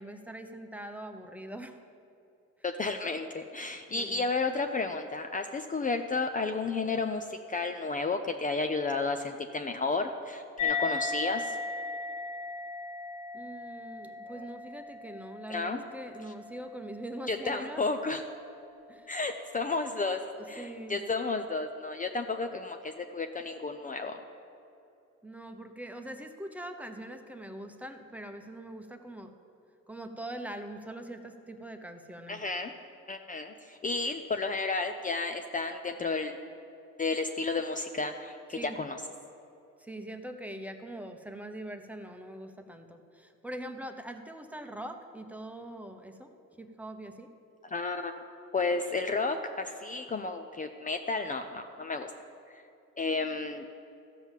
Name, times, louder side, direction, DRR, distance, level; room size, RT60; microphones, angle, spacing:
voice 1, 0.0-1.8 3.9-4.3 13.3-17.8 18.9-19.1 20.4-21.0 25.2-29.3 29.9-32.4 38.5-38.8 39.8-46.3 46.6-47.3, right 1 dB, 5° right, 6 dB, 0.9 m, -42 dB
voice 2, 2.6-11.6 14.3-14.5 15.5-15.8 17.3-18.2 19.1-20.2 20.5-24.2 32.3-32.7 33.1-36.4 37.0-39.0 47.7-48.1 48.5-52.1 52.5-52.6 53.0-53.6, left 3 dB, 25° left, 6 dB, 0.6 m, -32 dB
sound 1, 10.6-17.5, left 4 dB, 80° left, 0.8 m, -36 dB
14.0 x 5.6 x 7.3 m, 2.8 s
cardioid pair, 90°, 30 cm